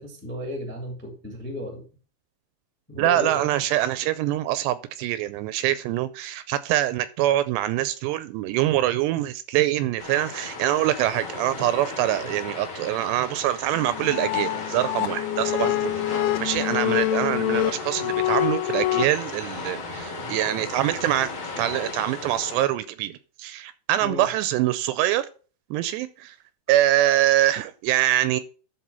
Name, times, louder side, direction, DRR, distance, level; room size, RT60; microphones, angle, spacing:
voice 1, 0.0-1.8 2.9-3.4 12.2-12.4 15.5-15.8 24.0-24.3, left 1 dB, 10° left, 0.7 m, -34 dB
voice 2, 3.0-15.8 16.4-25.3 25.7-26.4 26.7-28.4, right 13 dB, 80° right, 2.5 m, -24 dB
sound 1, 10.0-22.6, left 3 dB, 40° left, 3.0 m, -36 dB
sound 2, 13.7-19.1, left 14 dB, 80° left, 2.4 m, -26 dB
13.0 x 4.3 x 5.6 m
omnidirectional pair, 5.2 m